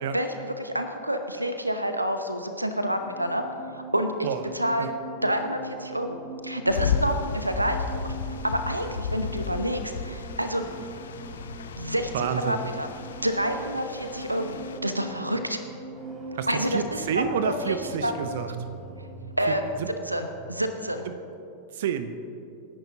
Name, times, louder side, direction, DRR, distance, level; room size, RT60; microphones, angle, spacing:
voice 1, 0.1-3.4 3.9-4.3 4.5-4.9 5.2-6.2 6.4-8.2 8.4-10.6 11.8-12.9 13.2-14.6 14.8-15.6 16.5-17.8 18.0-18.1 19.4-19.7 20.1-21.0, equal, 85° right, 8 dB, 0.9 m, -28 dB
sound 1, 2.5-21.0, right 2 dB, 20° right, 3.4 m, -41 dB
sound 2, 6.7-14.8, left 5 dB, 65° left, 0.8 m, -33 dB
voice 2, 12.1-12.6 16.4-18.5 19.8-19.9 21.1-21.2 21.7-22.4, right 7 dB, 55° right, 10 dB, 0.9 m, -29 dB
27.0 x 11.0 x 3.0 m, 2.7 s
figure-of-eight pair, 90°, 0 cm